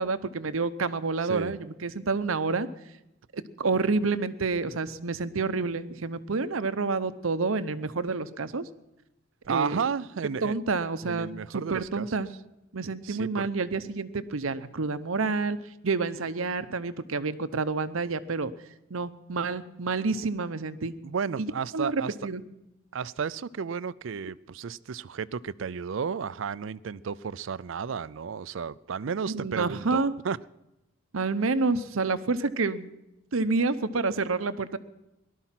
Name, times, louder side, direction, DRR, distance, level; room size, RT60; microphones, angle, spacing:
voice 1, 0.0-2.7 3.3-8.6 9.5-9.8 10.4-12.3 12.7-15.6 15.8-18.5 18.9-20.9 21.4-21.5 21.7-22.4 29.3-30.1 31.1-32.9 33.3-34.8, right 4 dB, 80° right, 12 dB, 0.8 m, -28 dB
voice 2, 1.2-1.5 9.5-10.5 11.0-12.2 13.0-13.5 21.0-22.1 22.9-30.4, right 6 dB, 65° right, 19 dB, 0.4 m, -33 dB
18.5 x 12.0 x 5.8 m, 0.91 s
head